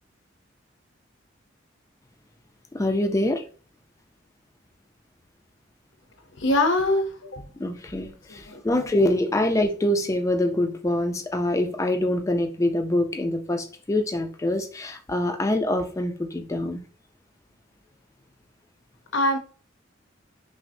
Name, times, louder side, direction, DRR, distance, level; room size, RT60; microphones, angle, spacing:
voice 1, 2.7-3.4 7.6-16.8, left 1 dB, 15° left, 0.4 m, -25 dB
voice 2, 6.4-7.4 8.3-8.8 19.1-19.4, left 2 dB, 75° left, 0.7 m, -24 dB
5.7 x 2.0 x 2.6 m
head